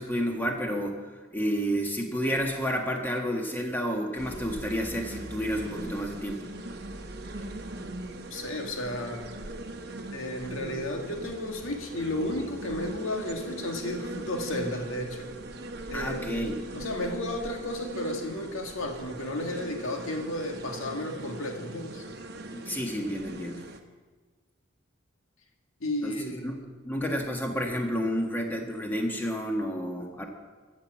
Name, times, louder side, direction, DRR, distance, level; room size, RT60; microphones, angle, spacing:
voice 1, 0.0-6.5 15.9-16.6 22.5-23.6 26.0-30.2, equal, 10° left, 1 dB, 1.5 m, -30 dB
sound 1, 4.2-23.8, right 1 dB, 50° right, 1.0 m, -40 dB
voice 2, 8.3-9.3 10.1-15.3 15.9-16.5 16.7-22.0 25.8-26.6, left 1 dB, 80° left, 3 dB, 1.9 m, -33 dB
14.0 x 7.4 x 7.6 m, 1.4 s
head